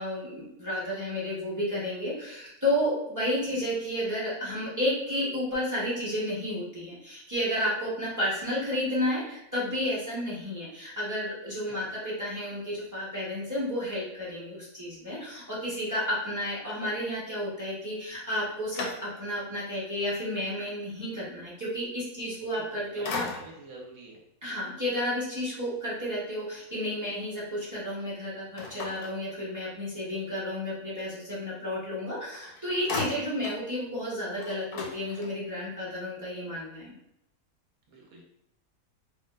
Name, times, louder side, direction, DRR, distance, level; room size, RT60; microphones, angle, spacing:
voice 1, 0.0-23.2 24.4-36.9, left 1 dB, 25° right, -8 dB, 0.4 m, -32 dB
sound 1, 18.1-19.5 20.1-20.2 22.4-22.7 23.0-23.8 28.6-29.8 31.9-32.0 32.3-33.7 34.0-34.1 34.3-35.6, left 4 dB, 80° left, 1.1 m, -38 dB
voice 2, 22.5-24.2 37.9-38.2, right 3 dB, 65° right, -3 dB, 1.0 m, -47 dB
2.6 x 2.3 x 2.2 m, 0.82 s
omnidirectional pair, 1.6 m